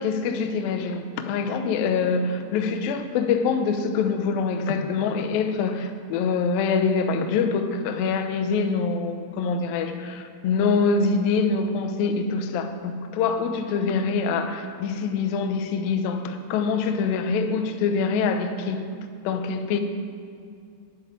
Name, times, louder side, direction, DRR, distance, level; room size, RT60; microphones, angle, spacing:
voice 1, 0.0-18.9 19.2-19.8, left 5 dB, 90° left, 7 dB, 2.0 m, -25 dB
9.7 x 8.2 x 9.4 m, 2.4 s
omnidirectional pair, 5.4 m